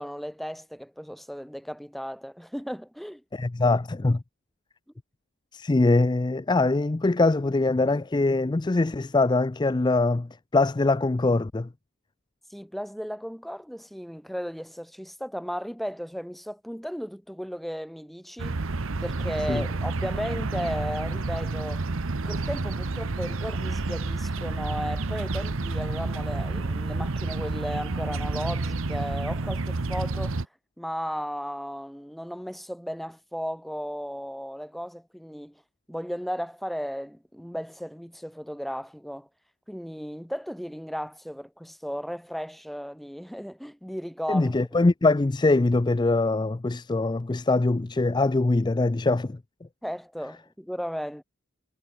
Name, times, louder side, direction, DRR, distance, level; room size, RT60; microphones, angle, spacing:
voice 1, 0.0-3.2 12.5-21.9 22.2-30.5 30.8-35.6 35.9-39.3 39.7-44.7 49.8-51.2, equal, ahead, 2.8 m, -35 dB
voice 2, 3.3-4.2 5.5-11.7 19.5-19.6 44.3-49.4, left 2 dB, 20° left, 0.4 m, -23 dB
sound 1, 18.4-30.4, right 3 dB, 65° right, 0.9 m, -30 dB
head